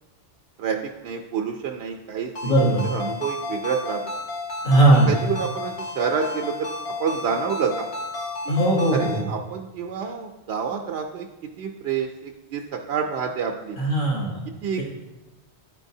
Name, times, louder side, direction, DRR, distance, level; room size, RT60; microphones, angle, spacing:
voice 1, 1.0-2.5 2.9-4.0 5.1-6.7 7.0-7.9 8.5-8.6 8.9-11.3 11.6-13.8 14.5-14.8, right 6 dB, 85° right, 2 dB, 0.8 m, -28 dB
Ringtone, 2.4-9.2, left 2 dB, 85° left, 1.5 m, -32 dB
voice 2, 2.4-2.9 4.6-5.1 8.5-9.3 13.8-14.4, right 2 dB, 55° left, -5 dB, 1.1 m, -18 dB
10.5 x 4.5 x 2.7 m, 1.1 s
omnidirectional pair, 1.1 m